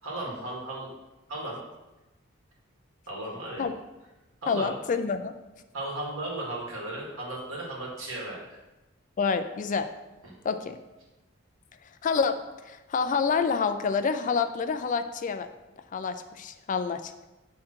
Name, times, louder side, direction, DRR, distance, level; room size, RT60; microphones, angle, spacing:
voice 1, 0.0-0.9 1.3-1.6 3.1-3.7 4.4-4.7 5.7-8.4 10.2-10.3, right 1 dB, 75° right, -3 dB, 2.0 m, -35 dB
voice 2, 4.5-5.3 9.2-9.9 10.4-10.8 12.0-12.4 12.7-15.5 15.9-17.1, left 5 dB, 40° left, 9 dB, 0.4 m, -27 dB
7.6 x 3.7 x 4.4 m, 1.0 s
head